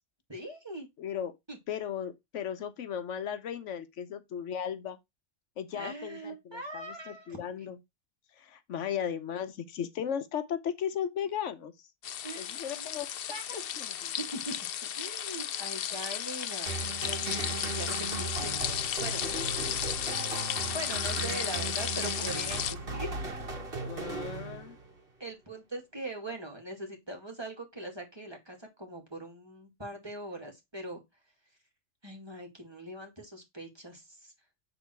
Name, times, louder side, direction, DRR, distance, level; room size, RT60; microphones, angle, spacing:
voice 1, 0.3-0.9 1.5-1.6 5.7-7.7 12.2-12.9 13.3-13.7 14.2-14.5 14.9-18.6 19.0-19.2 20.7-23.6 25.2-31.0 32.0-34.3, right 1 dB, 20° right, 2.4 m, -41 dB
voice 2, 1.0-1.3 1.7-5.0 5.6-7.8 8.4-11.7 12.4-13.1 13.5-14.1 23.8-24.8, left 8 dB, 80° left, 1.1 m, -36 dB
sound 1, 12.0-22.7, left 10 dB, 60° left, 0.7 m, -34 dB
sound 2, 16.7-25.0, right 3 dB, 50° right, 2.1 m, -37 dB
8.5 x 4.0 x 4.5 m
omnidirectional pair, 1.2 m